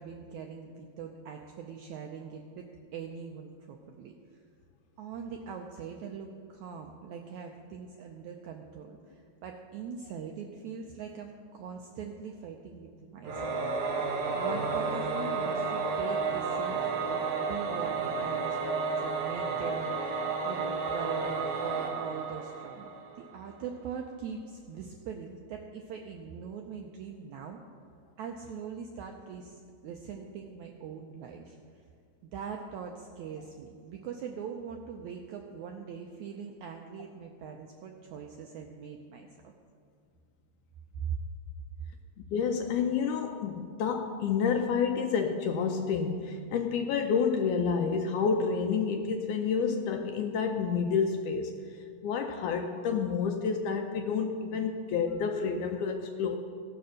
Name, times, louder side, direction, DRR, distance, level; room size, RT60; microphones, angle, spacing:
voice 1, 0.0-2.7 2.9-4.1 5.0-14.0 14.3-20.1 20.4-22.9 23.2-27.6 28.2-31.6 32.3-39.5 41.1-41.2, right 6 dB, 85° right, 3 dB, 1.7 m, -42 dB
Singing / Musical instrument, 13.2-23.3, right 4 dB, 65° right, 1.7 m, -32 dB
voice 2, 42.3-51.5 52.0-56.4, left 6 dB, 75° left, 4 dB, 1.9 m, -29 dB
16.0 x 6.9 x 6.4 m, 2.2 s
omnidirectional pair, 4.1 m